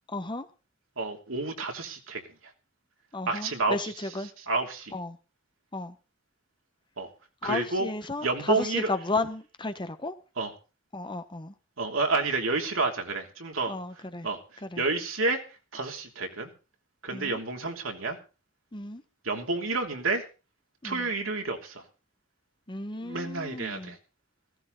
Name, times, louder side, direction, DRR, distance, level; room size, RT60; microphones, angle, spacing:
voice 1, 0.1-0.5 3.1-4.3 4.9-5.2 5.7-5.9 7.4-10.1 10.9-11.5 13.7-14.3 14.7-14.8 17.1-17.4 18.7-19.0 20.8-21.1 22.7-24.0, left 2 dB, 25° left, 1.3 m, -33 dB
voice 2, 1.0-2.2 3.3-3.8 4.5-4.9 7.0-7.1 7.4-7.9 8.2-8.9 10.4-10.5 11.8-13.8 14.2-15.4 15.7-16.5 17.0-18.2 19.2-20.2 20.8-21.8 23.0-24.0, right 3 dB, 90° right, 3.1 m, -29 dB
16.0 x 15.0 x 4.1 m
head